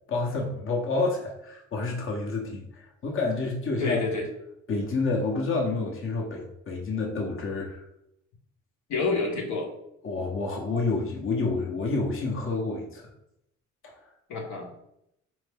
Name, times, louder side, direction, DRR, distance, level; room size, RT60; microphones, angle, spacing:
voice 1, 0.1-4.0 4.7-7.8 10.0-13.1 13.8-14.1, left 3 dB, 45° left, 0 dB, 0.9 m, -29 dB
voice 2, 3.8-4.3 8.9-9.7 14.3-14.8, left 3 dB, 75° left, 0 dB, 1.1 m, -28 dB
4.3 x 2.7 x 3.4 m, 0.80 s
cardioid pair, 90°, 30 cm